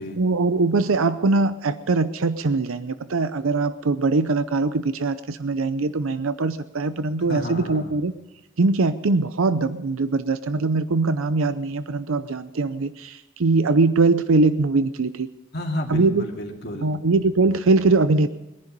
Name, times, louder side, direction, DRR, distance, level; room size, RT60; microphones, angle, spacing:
voice 1, 0.2-8.1 8.6-15.3 15.9-16.3 16.8-18.3, right 3 dB, 85° right, 12 dB, 0.6 m, -22 dB
voice 2, 7.2-7.9 15.5-16.9, left 1 dB, 50° left, 0 dB, 2.3 m, -31 dB
22.0 x 10.5 x 5.3 m, 0.99 s
head